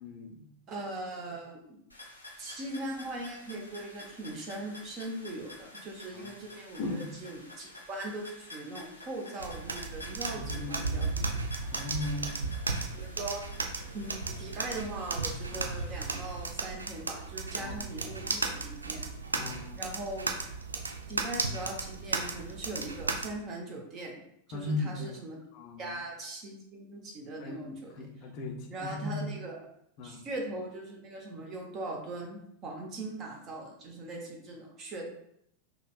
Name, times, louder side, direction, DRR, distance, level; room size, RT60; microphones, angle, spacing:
voice 1, 0.0-0.5 6.1-6.3 6.8-7.1 10.2-11.1 11.7-12.5 15.5-15.7 17.6-17.8 19.3-19.8 24.5-25.1 25.5-25.9 27.4-27.6 28.0-29.3 30.0-30.2, left 2 dB, 40° left, 3 dB, 0.5 m, -37 dB
voice 2, 0.7-1.8 2.4-11.7 12.8-13.4 13.9-19.1 19.7-20.3 21.1-24.1 24.5-25.4 25.8-28.1 28.7-29.6 30.0-35.1, right 2 dB, 30° right, 0 dB, 0.8 m, -40 dB
sound 1, 1.9-16.5, left 2 dB, 85° left, 0.7 m, -50 dB
sound 2, 9.4-23.3, right 3 dB, 80° right, 0.3 m, -35 dB
5.0 x 2.2 x 2.3 m, 0.73 s
figure-of-eight pair, 90°, 0 cm